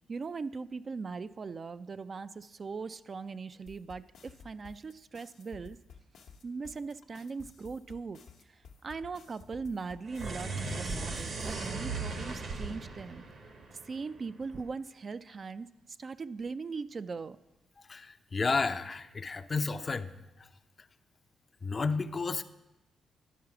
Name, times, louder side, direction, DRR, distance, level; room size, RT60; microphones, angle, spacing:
voice 1, 0.1-5.8 6.4-8.2 8.5-13.2 13.7-17.4, right 4 dB, 45° right, 12 dB, 0.3 m, -40 dB
sound 1, 3.7-11.7, left 5 dB, 85° left, 0.9 m, -53 dB
sound 2, 10.1-14.5, right 3 dB, 65° right, 1.1 m, -37 dB
voice 2, 17.8-20.1 20.4-20.5 21.6-22.4, left 4 dB, 40° left, 10 dB, 0.5 m, -32 dB
11.0 x 4.7 x 5.9 m, 0.96 s
supercardioid pair, 60°, 0 cm